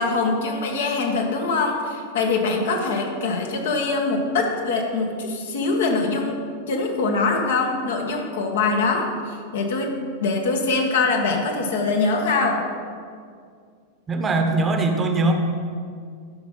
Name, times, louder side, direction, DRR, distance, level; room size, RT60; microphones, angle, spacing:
voice 1, 0.0-6.4 6.7-12.6, left 3 dB, 60° left, 1 dB, 1.5 m, -23 dB
voice 2, 14.1-15.3, right 3 dB, 20° right, 4 dB, 1.0 m, -21 dB
11.5 x 5.8 x 5.4 m, 2.2 s
figure-of-eight pair, 90°, 0 cm